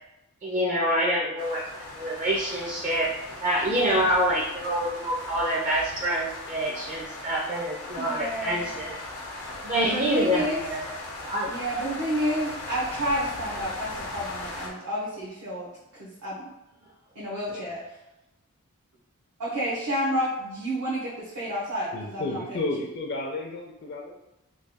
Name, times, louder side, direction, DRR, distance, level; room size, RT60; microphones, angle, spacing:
voice 1, 0.4-3.1 3.4-8.9 9.6-10.8 11.2-11.6, equal, 35° right, -3 dB, 0.4 m, -26 dB
sound 1, 1.4-14.7, left 2 dB, 80° left, 0.7 m, -39 dB
voice 2, 3.7-4.1 8.0-8.7 9.8-10.6 11.5-15.7 16.0-16.5 17.1-17.8 19.4-22.7, equal, 80° right, -8 dB, 0.9 m, -30 dB
voice 3, 21.9-24.1, left 2 dB, 50° left, 0 dB, 0.4 m, -32 dB
3.2 x 2.2 x 3.4 m, 0.90 s
head